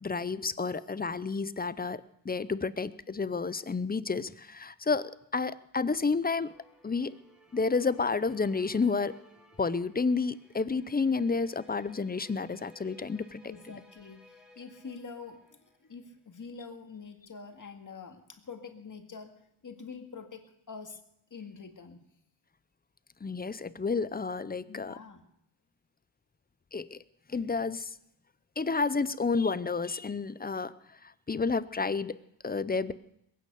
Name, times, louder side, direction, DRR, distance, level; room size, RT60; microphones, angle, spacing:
voice 1, 0.0-6.5 6.8-7.2 7.5-9.2 9.6-13.4 23.2-24.9 26.7-27.0 27.3-27.9 28.6-30.7 31.3-32.2 32.4-32.9, left 4 dB, 20° left, 16 dB, 0.6 m, -30 dB
sound 1, 6.5-16.2, left 1 dB, ahead, 2.2 m, -59 dB
voice 2, 13.4-19.3 19.6-21.0 21.3-22.0 24.7-25.2, left 5 dB, 40° left, 5 dB, 2.0 m, -46 dB
21.5 x 9.4 x 6.8 m, 0.78 s
wide cardioid pair, 105°, 47 cm